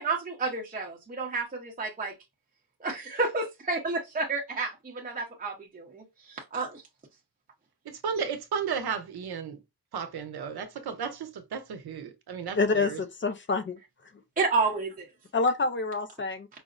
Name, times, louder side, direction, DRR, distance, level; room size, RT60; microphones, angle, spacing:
voice 1, 0.0-2.1 2.8-6.8 14.4-15.1, right 3 dB, 20° right, 0.7 m, -30 dB
voice 2, 7.8-9.6 9.9-13.0, right 6 dB, 65° right, 0.8 m, -34 dB
voice 3, 12.6-13.8 15.3-16.5, left 3 dB, 30° left, 0.4 m, -27 dB
4.8 x 2.0 x 2.5 m
wide cardioid pair, 120°, 41 cm